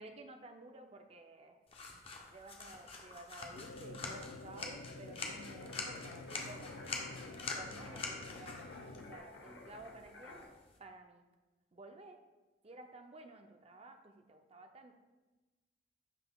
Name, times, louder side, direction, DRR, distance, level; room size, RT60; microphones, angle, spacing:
voice 1, 0.0-1.6 2.3-6.8 7.3-10.4 10.8-11.2 11.7-12.2 12.6-14.9, right 2 dB, 35° right, 5 dB, 0.4 m, -54 dB
sound 1, 1.7-10.8, left 4 dB, 30° left, 0.7 m, -46 dB
sound 2, 3.5-9.2, left 3 dB, 70° left, 0.3 m, -50 dB
sound 3, 5.5-10.5, left 1 dB, 85° left, 0.9 m, -53 dB
10.5 x 3.8 x 2.3 m, 1.2 s
head